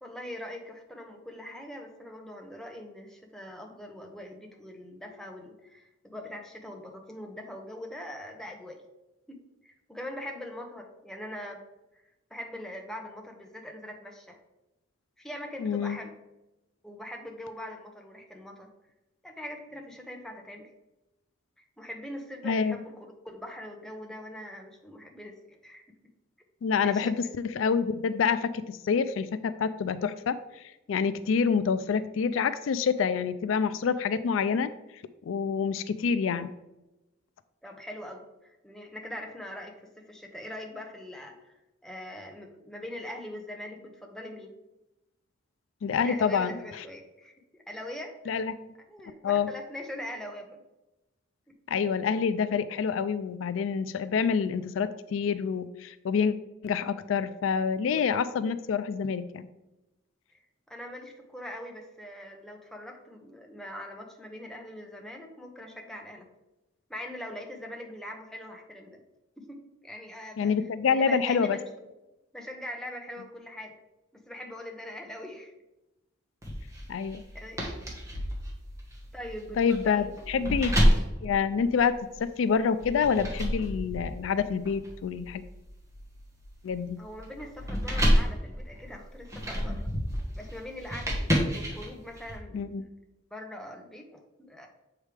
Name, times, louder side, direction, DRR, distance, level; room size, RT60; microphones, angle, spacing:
voice 1, 0.0-8.8 9.3-11.6 12.3-14.4 15.2-16.2 16.8-18.7 19.2-20.7 21.8-25.8 26.8-27.2 37.6-44.6 46.0-48.4 48.9-50.6 51.5-51.6 60.3-60.4 60.7-66.3 66.9-69.0 69.4-70.5 70.9-71.9 72.3-73.8 74.1-75.5 77.3-77.7 79.1-80.3 87.0-89.9 90.3-92.7 93.3-94.7, left 1 dB, 5° left, 1 dB, 0.9 m, -42 dB
voice 2, 15.6-16.0 22.4-22.8 26.6-27.1 27.6-34.7 35.3-36.5 45.8-46.5 48.3-48.6 49.2-49.5 51.7-56.3 56.6-59.5 70.4-71.6 76.9-77.2 79.6-80.7 81.2-81.9 82.2-85.4 86.6-87.0 92.5-92.8, left 6 dB, 90° left, 13 dB, 0.4 m, -27 dB
sound 1, 76.4-82.2 82.8-92.3, equal, 15° right, 1.3 m, -30 dB
7.3 x 4.8 x 3.4 m, 0.97 s
head